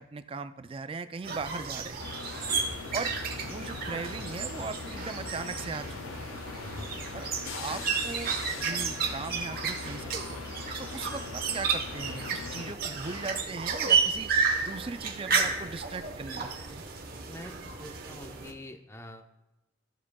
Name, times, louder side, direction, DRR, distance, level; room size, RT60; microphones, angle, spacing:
voice 1, 0.0-2.1 2.9-3.1 3.4-6.3 7.1-7.3 7.5-10.4 10.8-14.3 14.6-16.8, right 4 dB, 25° right, 11 dB, 0.3 m, -39 dB
sound 1, 1.2-18.5, right 5 dB, 50° right, 1.0 m, -32 dB
sound 2, 2.0-12.7 13.0-13.4, left 6 dB, 90° left, 0.4 m, -41 dB
voice 2, 6.6-7.0 17.3-19.2, left 1 dB, 15° left, 6 dB, 0.6 m, -45 dB
14.0 x 7.3 x 2.3 m, 1.0 s
head